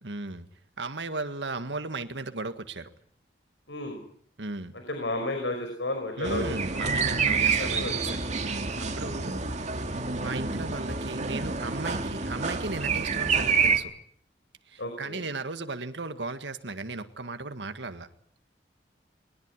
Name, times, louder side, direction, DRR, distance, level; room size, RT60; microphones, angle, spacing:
voice 1, 0.0-0.5 0.8-2.9 4.4-4.7 6.2-9.5 10.1-13.9 14.6-18.1, right 3 dB, 90° right, 9 dB, 1.8 m, -36 dB
voice 2, 3.7-4.0 4.9-6.8 7.5-8.2 9.0-9.2 14.8-15.2, left 1 dB, 90° left, 5 dB, 5.4 m, -33 dB
sound 1, 6.2-13.8, right 5 dB, 40° right, 2.4 m, -28 dB
21.5 x 20.0 x 9.8 m, 0.62 s
head